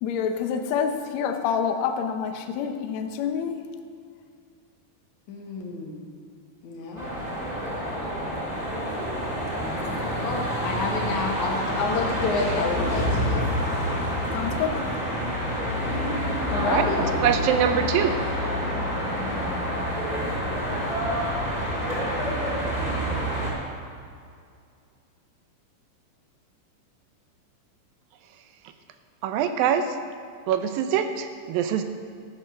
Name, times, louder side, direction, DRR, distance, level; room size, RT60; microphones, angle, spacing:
voice 1, 0.0-3.6 14.3-14.8, left 7 dB, 85° left, 6 dB, 1.5 m, -27 dB
voice 2, 5.3-6.0 6.6-7.1 9.6-13.5 16.5-17.2, left 3 dB, 60° left, 0 dB, 2.7 m, -29 dB
sound 1, 7.0-23.5, equal, 10° right, 3.4 m, -27 dB
voice 3, 17.2-18.1 29.2-29.8 30.5-31.8, right 9 dB, 80° right, 8 dB, 2.4 m, -23 dB
13.0 x 8.7 x 6.3 m, 2.3 s
omnidirectional pair, 4.2 m